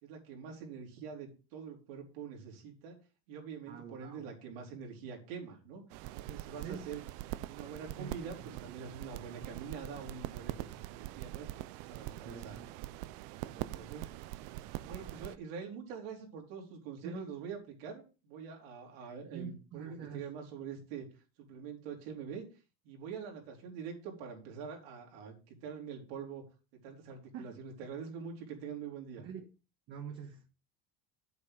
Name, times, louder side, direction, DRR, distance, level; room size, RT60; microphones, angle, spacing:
voice 1, 0.0-3.0 3.3-5.9 6.2-7.0 7.5-11.5 11.9-12.6 13.4-14.1 14.8-22.4 22.8-26.4 26.8-29.2, right 6 dB, 80° right, 4.1 m, -45 dB
voice 2, 3.7-4.3 6.6-6.8 8.0-8.1 12.2-12.7 17.0-17.2 19.3-20.3 27.3-27.5 29.2-29.4 29.9-30.5, right 7 dB, 40° right, 1.4 m, -45 dB
sound 1, 5.9-15.3, right 16 dB, 55° right, 0.6 m, -43 dB
8.3 x 8.2 x 4.9 m
cardioid pair, 175°, 30 cm